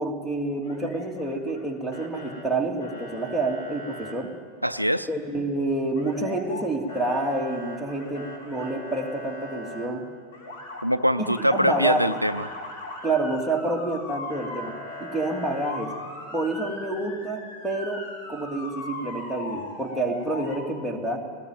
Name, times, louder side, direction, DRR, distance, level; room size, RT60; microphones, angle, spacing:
voice 1, 0.0-4.3 5.1-10.0 11.5-12.2 13.0-14.7 15.0-15.9 16.3-18.0 18.3-21.2, right 2 dB, ahead, 4 dB, 2.7 m, -28 dB
Motor vehicle (road) / Siren, 0.6-1.6 1.9-2.4 2.8-4.1 6.0-6.6 6.9-9.9 10.3-10.8 11.2-20.6, left 2 dB, 55° left, 4.9 m, -39 dB
voice 2, 4.6-5.1 10.8-12.5, equal, 90° right, 12 dB, 0.5 m, -23 dB
19.0 x 19.0 x 9.3 m, 2.1 s
figure-of-eight pair, 90°, 0 cm